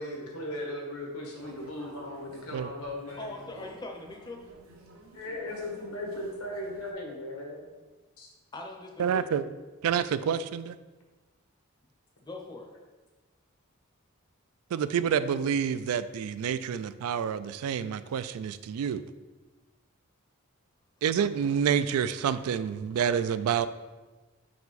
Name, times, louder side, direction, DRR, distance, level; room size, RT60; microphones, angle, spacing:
voice 1, 0.0-3.4 5.1-7.6 8.2-8.3, left 1 dB, 90° left, 0 dB, 1.4 m, -37 dB
sound 1, 1.4-6.9, right 2 dB, 70° right, 0.7 m, -52 dB
voice 2, 3.2-4.5 8.5-9.3 12.2-12.7, left 2 dB, 20° left, 1 dB, 0.6 m, -41 dB
voice 3, 9.0-9.4 9.8-10.8 14.7-19.0 21.0-23.7, right 8 dB, 85° right, 14 dB, 0.3 m, -28 dB
5.1 x 4.7 x 4.0 m, 1.2 s
head